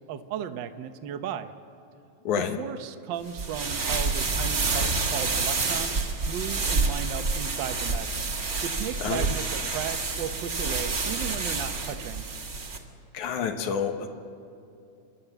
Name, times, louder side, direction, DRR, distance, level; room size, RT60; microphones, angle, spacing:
voice 1, 0.1-1.5 2.4-6.0 6.3-8.3 8.6-12.3, right 8 dB, 80° right, 9 dB, 1.0 m, -35 dB
voice 2, 2.3-2.6 9.0-9.3 13.1-14.1, left 7 dB, 90° left, 5 dB, 2.7 m, -28 dB
sound 1, 3.3-12.8, right 3 dB, 35° right, 1.6 m, -28 dB
29.5 x 12.0 x 8.0 m, 2.6 s
omnidirectional pair, 3.3 m